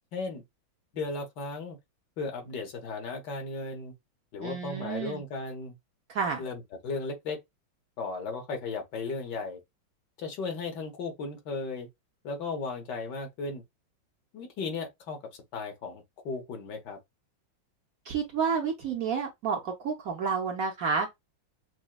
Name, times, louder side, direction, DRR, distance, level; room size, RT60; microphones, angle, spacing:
voice 1, 0.1-0.4 0.9-1.8 2.2-3.9 4.3-5.8 6.4-7.4 8.0-9.6 10.2-11.9 12.2-13.6 14.3-15.2 15.5-17.0, left 3 dB, 65° left, 1.7 m, -35 dB
voice 2, 4.4-5.2 6.1-6.4 18.1-21.1, right 6 dB, 60° right, 1.0 m, -30 dB
6.1 x 2.2 x 2.2 m
omnidirectional pair, 2.1 m